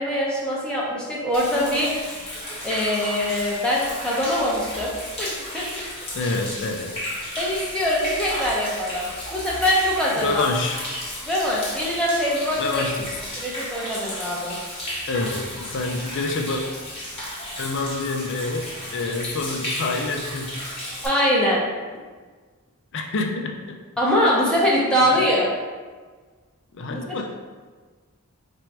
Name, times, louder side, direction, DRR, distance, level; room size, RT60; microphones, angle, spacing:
voice 1, 0.0-1.9 2.6-5.9 7.4-10.4 11.3-12.8 13.4-14.6 21.0-21.6 24.0-25.5 26.9-27.2, equal, 5° left, -6 dB, 0.7 m, -23 dB
Human voice / Rain / Stream, 1.3-21.1, left 1 dB, 25° left, 1.1 m, -33 dB
voice 2, 6.1-6.9 10.2-10.8 12.6-13.2 15.1-16.6 17.6-18.6 18.9-20.7 22.9-23.8 25.0-25.1 26.7-27.2, left 3 dB, 55° left, 2 dB, 0.5 m, -27 dB
4.4 x 2.6 x 4.5 m, 1.4 s
head